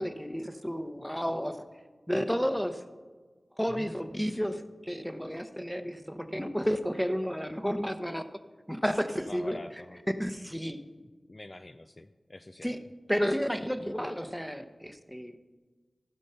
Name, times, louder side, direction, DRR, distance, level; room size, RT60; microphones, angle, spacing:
voice 1, 0.0-1.6 2.1-2.8 3.6-8.2 8.7-9.6 10.1-10.8 12.6-12.8 13.1-15.5, equal, 5° left, 9 dB, 0.9 m, -31 dB
voice 2, 9.3-10.0 11.3-12.7, left 2 dB, 40° left, 9 dB, 0.4 m, -45 dB
16.0 x 5.3 x 5.6 m, 1.4 s
cardioid pair, 45°, 0 cm